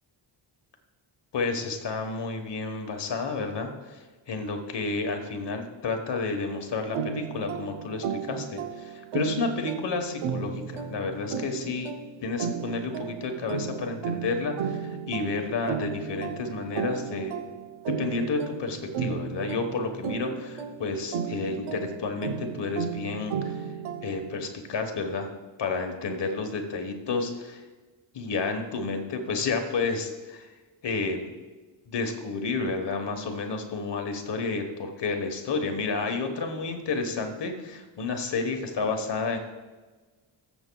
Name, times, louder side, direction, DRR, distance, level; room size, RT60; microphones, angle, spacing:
voice 1, 1.3-11.9 12.2-17.5 17.9-23.7 24.0-25.3 25.6-27.7 28.1-30.5 30.8-31.3 31.9-39.4, left 4 dB, 60° left, 5 dB, 1.3 m, -31 dB
sound 1, 6.9-24.4, right 7 dB, 90° right, 0.9 m, -34 dB
21.0 x 7.2 x 2.3 m, 1.3 s
wide cardioid pair, 140°, 48 cm